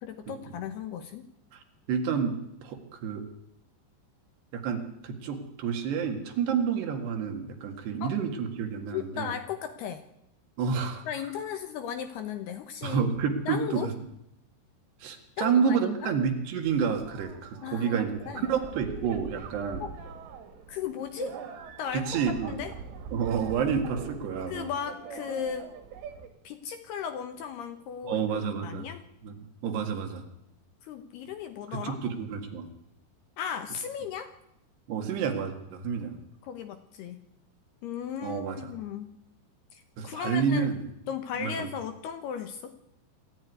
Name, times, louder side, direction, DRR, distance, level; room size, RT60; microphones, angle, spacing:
voice 1, 0.0-1.2 8.0-8.2 8.9-10.0 11.1-13.1 13.5-13.9 15.4-16.1 17.6-18.5 19.8-19.9 20.7-21.4 21.8-22.7 24.5-25.7 26.4-28.3 28.6-29.0 30.8-32.0 33.4-34.3 36.4-37.3 37.8-39.1 39.7-40.7 41.1-42.7, left 8 dB, 70° left, 8 dB, 2.7 m, -36 dB
voice 2, 1.9-3.3 4.5-9.3 10.6-11.0 12.8-13.9 15.0-19.9 21.9-22.6 23.1-24.7 28.0-28.9 29.2-29.3 29.6-30.2 31.7-32.7 34.9-36.2 38.2-38.7 40.0-40.8 41.4-41.7, right 6 dB, 65° right, 4 dB, 3.8 m, -29 dB
sound 1, 16.6-26.3, right 6 dB, 85° right, 4.8 m, -42 dB
26.5 x 13.0 x 9.6 m, 0.83 s
omnidirectional pair, 5.5 m